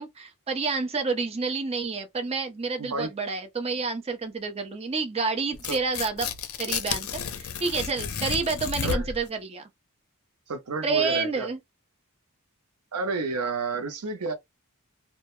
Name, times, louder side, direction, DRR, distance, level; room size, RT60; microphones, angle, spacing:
voice 1, 0.0-6.3 6.6-7.1 7.3-9.6 10.8-11.6, right 4 dB, 25° right, 0.5 m, -29 dB
voice 2, 2.8-3.1 5.7-5.8 8.8-9.1 10.5-11.5 12.9-14.3, right 3 dB, 90° right, 0.6 m, -30 dB
Tearing, 5.5-9.3, left 7 dB, 65° left, 0.5 m, -32 dB
2.2 x 2.0 x 2.9 m
head